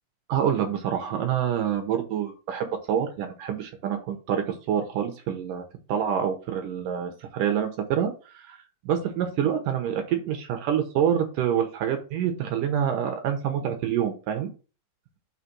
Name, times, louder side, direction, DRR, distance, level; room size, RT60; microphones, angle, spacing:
voice 1, 0.3-8.6 8.9-14.5, right 9 dB, 75° right, 5 dB, 2.1 m, -27 dB
6.0 x 4.1 x 6.1 m, 0.35 s
omnidirectional pair, 4.8 m